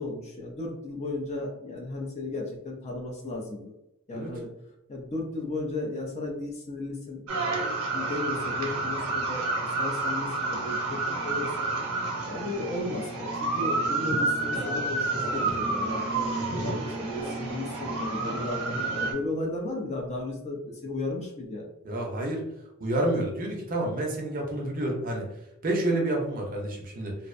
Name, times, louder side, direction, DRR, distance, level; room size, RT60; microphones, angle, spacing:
voice 1, 0.0-3.7 4.1-4.5 4.9-11.7 12.2-16.3 16.6-21.7, left 2 dB, 30° left, 0 dB, 0.4 m, -35 dB
sound 1, 7.3-19.1, right 3 dB, 80° right, 0.7 m, -29 dB
voice 2, 16.3-16.6 21.8-22.4 22.8-25.3 25.6-27.2, right 1 dB, 40° right, 0 dB, 0.5 m, -29 dB
2.5 x 2.0 x 2.4 m, 0.85 s
head